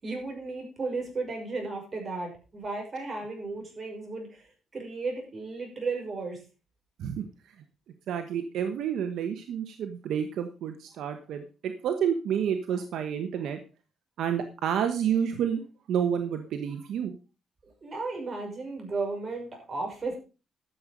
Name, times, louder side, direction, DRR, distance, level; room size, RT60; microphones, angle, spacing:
voice 1, 0.0-4.5 4.7-6.4 17.6-20.2, right 3 dB, 35° right, 2 dB, 6.2 m, -34 dB
voice 2, 8.1-13.6 14.2-15.6 15.9-17.1, right 8 dB, 75° right, 7 dB, 1.2 m, -29 dB
12.5 x 7.6 x 5.1 m, 0.33 s
cardioid pair, 90°, 0 cm